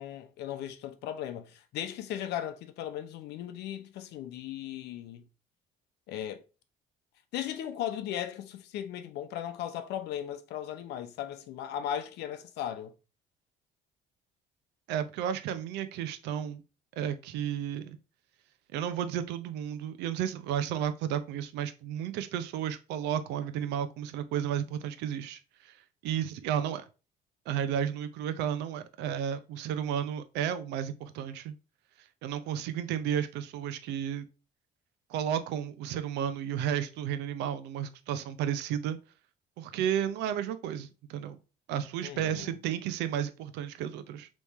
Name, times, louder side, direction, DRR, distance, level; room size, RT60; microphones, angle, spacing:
voice 1, 0.0-5.3 6.1-6.4 7.3-12.9 42.0-42.6, left 10 dB, 80° left, 0.7 m, -37 dB
voice 2, 14.9-16.6 17.0-18.0 18.7-25.8 26.0-26.8 27.5-31.5 32.2-34.3 35.1-39.0 39.6-41.4 41.7-44.3, right 9 dB, 85° right, 0.5 m, -32 dB
3.5 x 3.1 x 4.1 m
cardioid pair, 110°, 17 cm